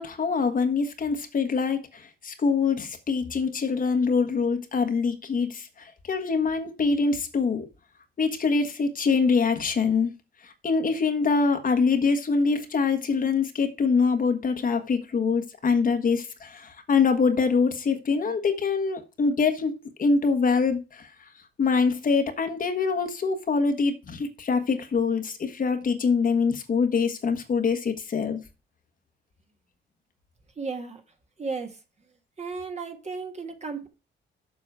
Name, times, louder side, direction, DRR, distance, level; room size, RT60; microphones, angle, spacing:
voice 1, 0.0-7.7 8.2-10.1 10.4-21.3 21.6-28.4, left 5 dB, 45° left, 1.4 m, -24 dB
voice 2, 30.6-31.0 31.4-31.8 32.4-33.9, right 4 dB, 35° right, 1.8 m, -34 dB
7.4 x 6.2 x 4.8 m
cardioid pair, 90°, 20 cm